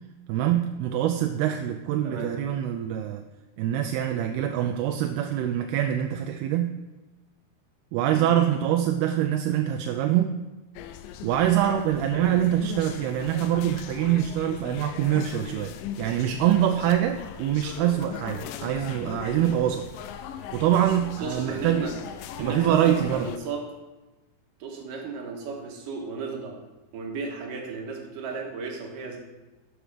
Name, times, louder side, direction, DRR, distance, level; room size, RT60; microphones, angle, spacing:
voice 1, 0.3-3.2 3.6-6.7 7.9-10.4 11.2-15.7 16.0-19.9 20.5-21.8 22.4-23.3, right 11 dB, 85° right, 6 dB, 2.6 m, -24 dB
sound 1, 10.7-23.4, left 9 dB, 85° left, 2.0 m, -39 dB
voice 2, 21.2-21.9 22.4-23.6 24.6-26.6 26.9-29.2, right 4 dB, 65° right, 1 dB, 2.8 m, -34 dB
11.5 x 7.5 x 5.0 m, 1.1 s
omnidirectional pair, 4.5 m